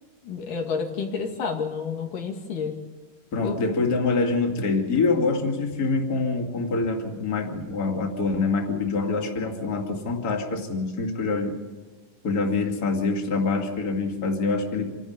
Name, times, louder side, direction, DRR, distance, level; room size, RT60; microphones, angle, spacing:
voice 1, 0.2-2.7 3.4-3.6, left 5 dB, 85° left, 2 dB, 3.9 m, -30 dB
voice 2, 3.3-11.6 12.2-15.0, left 3 dB, 30° left, 2 dB, 2.8 m, -25 dB
27.5 x 12.0 x 9.5 m, 1.3 s
omnidirectional pair, 3.6 m